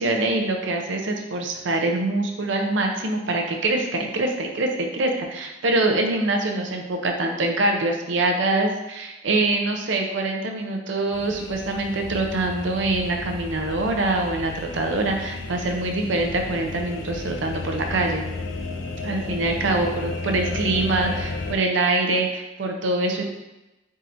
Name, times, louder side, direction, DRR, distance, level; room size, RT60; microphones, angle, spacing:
voice 1, 0.0-18.2 19.0-23.2, right 2 dB, 75° right, 3 dB, 0.6 m, -24 dB
sound 1, 11.1-21.6, left 2 dB, 90° left, 0.4 m, -33 dB
3.6 x 2.6 x 4.3 m, 1.0 s
head